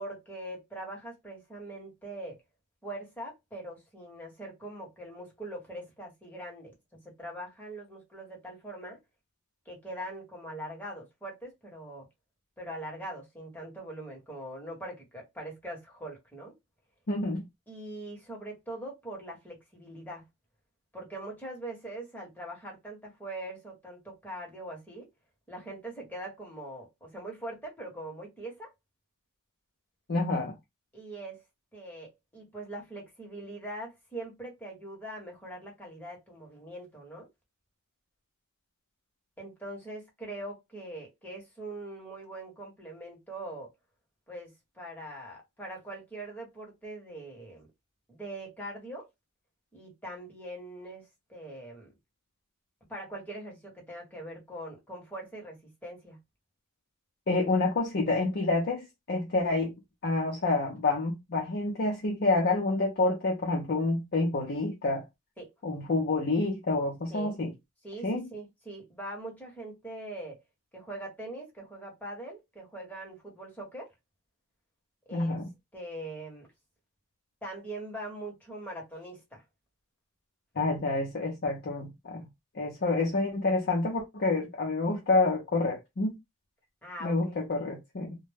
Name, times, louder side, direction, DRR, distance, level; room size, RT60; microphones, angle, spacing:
voice 1, 0.0-2.4 2.8-9.0 9.7-12.1 12.6-16.5 17.7-20.2 20.9-25.1 25.5-28.7 30.9-31.4 31.7-37.3 39.4-43.7 44.3-47.7 48.1-49.1 49.7-51.9 52.9-56.2 65.4-65.5 67.1-67.4 67.8-70.4 70.7-73.9 75.1-75.4 75.7-76.5 77.4-79.4 86.8-87.4, right 1 dB, 10° left, 1.0 m, -42 dB
voice 2, 17.1-17.4 30.1-30.5 57.3-59.7 60.0-65.0 65.6-67.5 68.0-68.3 75.1-75.5 80.6-82.3 82.5-86.1 87.0-88.2, left 3 dB, 50° left, 0.6 m, -28 dB
2.2 x 2.1 x 3.3 m
head